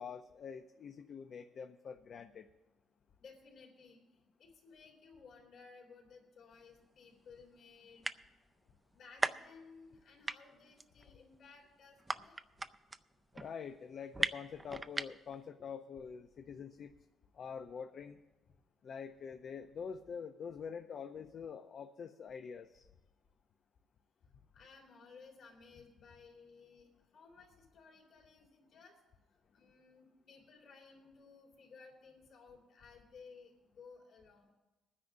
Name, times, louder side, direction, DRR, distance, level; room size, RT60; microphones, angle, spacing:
voice 1, 0.0-2.5 13.3-16.9 17.3-18.2 18.8-22.9, left 6 dB, 60° left, 7 dB, 0.5 m, -46 dB
voice 2, 3.2-4.0 4.4-8.0 8.9-12.4 24.5-28.9 29.5-34.5, left 4 dB, 75° left, -2 dB, 3.5 m, -58 dB
sound 1, 6.5-6.6 7.3-7.4 7.6-7.7 7.9-8.5 8.9-10.0 10.3-15.4, right 2 dB, 20° right, 0.4 m, -37 dB
23.5 x 9.7 x 2.6 m, 1.1 s
cardioid pair, 90°, 0 cm